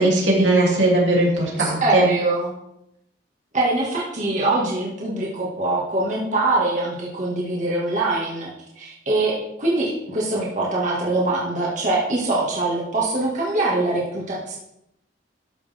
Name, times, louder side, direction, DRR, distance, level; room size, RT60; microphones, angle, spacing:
voice 1, 0.0-2.1, right 2 dB, 90° right, -3 dB, 3.4 m, -18 dB
voice 2, 1.6-2.5 3.5-8.5 8.8-14.6, right 2 dB, 40° right, -5 dB, 2.1 m, -23 dB
13.0 x 6.5 x 3.7 m, 0.82 s
head